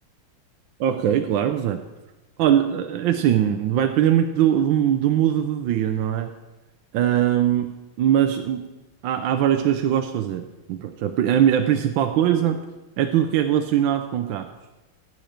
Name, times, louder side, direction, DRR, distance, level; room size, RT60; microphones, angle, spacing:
voice 1, 0.8-1.8 2.4-6.3 6.9-7.7 8.0-8.7 9.0-12.7 13.0-14.5, right 10 dB, 75° right, 6 dB, 1.2 m, -21 dB
15.5 x 7.9 x 4.4 m, 1.1 s
omnidirectional pair, 2.4 m